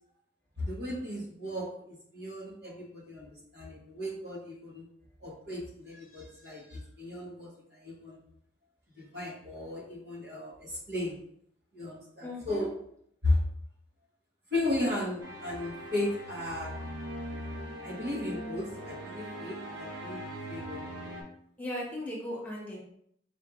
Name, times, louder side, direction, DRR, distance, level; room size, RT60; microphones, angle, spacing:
voice 1, 0.6-3.3 3.5-4.9 5.2-8.2 9.0-11.2 11.7-12.7 13.2-13.4 14.5-16.7 17.8-20.9, left 1 dB, 60° right, -3 dB, 1.4 m, -35 dB
voice 2, 12.2-12.7 21.6-22.8, left 1 dB, 10° left, -5 dB, 1.1 m, -37 dB
sound 1, 15.2-21.2, equal, 80° right, 1.5 m, -41 dB
4.5 x 4.3 x 2.5 m, 0.70 s
head